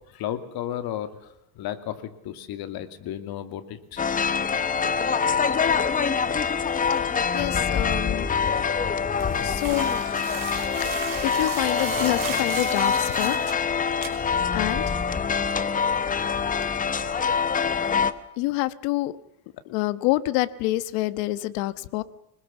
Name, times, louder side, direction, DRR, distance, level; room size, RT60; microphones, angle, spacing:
voice 1, 0.1-1.1 1.5-4.0, left 11 dB, 50° left, 9 dB, 2.7 m, -33 dB
sound 1, 4.0-18.1, left 6 dB, 15° left, 0.8 m, -25 dB
voice 2, 7.0-8.3 9.4-9.9 11.2-13.4 14.5-14.8 18.4-19.1 19.7-22.0, left 18 dB, 65° left, 14 dB, 1.4 m, -27 dB
sound 2, 9.2-13.6 14.0-14.1, right 9 dB, 40° right, 5.3 m, -36 dB
26.0 x 20.0 x 7.2 m, 0.86 s
cardioid pair, 145°, 49 cm